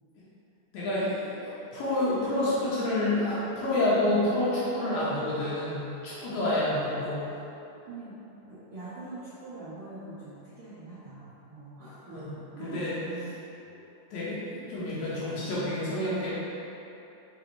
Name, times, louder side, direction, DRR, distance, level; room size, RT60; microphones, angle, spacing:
voice 1, 0.7-7.3 12.1-12.3 12.6-12.9 14.1-16.3, left 1 dB, 75° left, -9 dB, 1.9 m, -28 dB
voice 2, 6.2-6.6 7.8-8.2 8.5-13.4, right 2 dB, 85° right, -12 dB, 1.2 m, -43 dB
5.2 x 2.5 x 3.0 m, 3.0 s
omnidirectional pair, 3.6 m